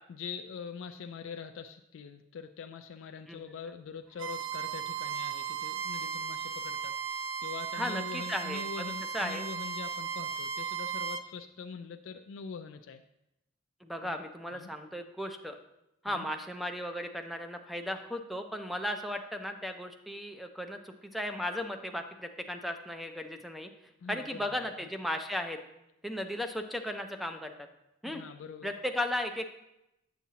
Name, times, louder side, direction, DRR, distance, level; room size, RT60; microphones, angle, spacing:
voice 1, 0.1-13.0 14.0-14.2 14.5-14.7 16.1-16.3 24.0-24.7 28.1-28.7, left 5 dB, 80° left, 6 dB, 0.4 m, -43 dB
Bowed string instrument, 4.2-11.2, right 7 dB, 80° right, 0.4 m, -36 dB
voice 2, 7.7-9.5 13.8-15.6 16.0-23.7 24.1-25.6 26.0-27.5 28.0-28.2 28.6-29.5, left 1 dB, ahead, 6 dB, 0.4 m, -36 dB
8.2 x 6.9 x 2.8 m, 0.88 s
head